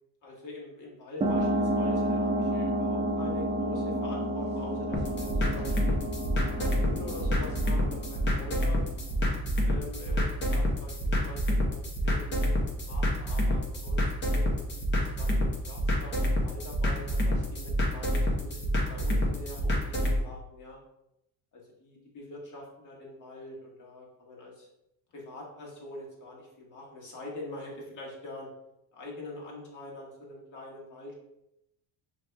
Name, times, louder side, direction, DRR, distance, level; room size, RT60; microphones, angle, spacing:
voice 1, 0.2-6.0 6.6-8.8 9.6-20.8 21.5-24.7 25.1-28.5 28.9-31.1, left 2 dB, 45° left, -3 dB, 1.5 m, -44 dB
sound 1, 1.2-9.3, right 1 dB, 15° right, 0.7 m, -31 dB
sound 2, 4.9-20.2, equal, 25° left, 0.8 m, -28 dB
5.9 x 2.9 x 2.2 m, 0.84 s
cardioid pair, 130°, 41 cm